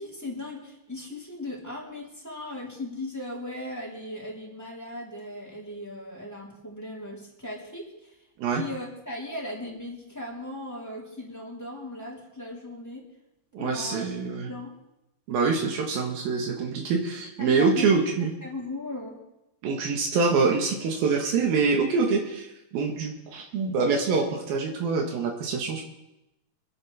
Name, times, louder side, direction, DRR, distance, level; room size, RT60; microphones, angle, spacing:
voice 1, 0.0-8.2 8.5-13.1 13.6-14.0 14.5-14.7 17.4-17.9 18.4-19.2, left 1 dB, 5° left, -5 dB, 3.4 m, -37 dB
voice 2, 13.5-14.5 15.3-18.3 19.6-25.8, right 4 dB, 80° right, 1 dB, 3.4 m, -25 dB
26.0 x 10.5 x 3.6 m, 0.90 s
omnidirectional pair, 4.2 m